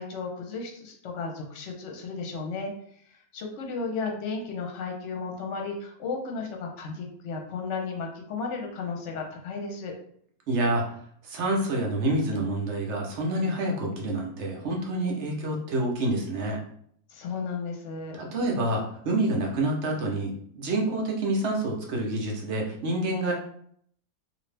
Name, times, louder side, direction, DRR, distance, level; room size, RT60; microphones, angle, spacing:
voice 1, 0.0-2.7 3.3-9.9 17.1-18.2, left 4 dB, 60° left, 2 dB, 1.0 m, -34 dB
voice 2, 10.5-10.8 11.2-16.6 18.1-23.3, right 1 dB, 60° right, 0 dB, 1.0 m, -27 dB
2.8 x 2.6 x 3.2 m, 0.64 s
omnidirectional pair, 1.5 m